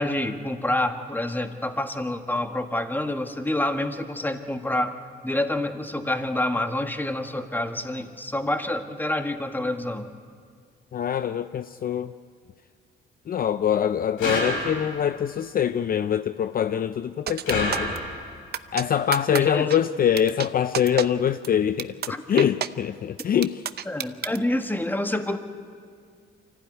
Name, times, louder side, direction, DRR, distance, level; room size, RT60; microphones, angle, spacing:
voice 1, 0.0-4.9 5.2-10.1 19.3-19.7 22.1-22.2 23.9-25.4, left 1 dB, 10° left, 7 dB, 1.5 m, -27 dB
voice 2, 10.9-12.1 13.3-18.0 18.7-23.6, left 9 dB, 45° left, 12 dB, 0.5 m, -24 dB
sound 1, 14.2-15.1 17.5-18.4, left 1 dB, 90° left, 7.0 m, -28 dB
sound 2, 17.3-18.0 18.5-18.8 19.1-19.4 19.7-19.8 20.2-20.5 20.7-21.1 21.4-21.5 21.8-22.1 22.4-22.7 23.2-24.4, right 9 dB, 55° right, 0.7 m, -28 dB
24.5 x 15.0 x 9.6 m, 2.1 s
cardioid pair, 90°, 20 cm